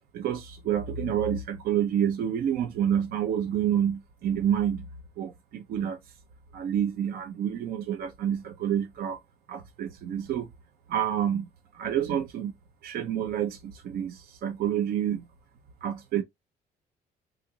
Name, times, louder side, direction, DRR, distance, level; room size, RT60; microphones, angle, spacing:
voice 1, 0.1-4.8 5.2-6.0 6.5-9.2 9.5-10.5 10.9-12.5 12.8-15.2 15.8-16.2, right 9 dB, 60° right, 0.6 m, -28 dB
3.8 x 2.4 x 2.7 m
cardioid pair, 110°, 17 cm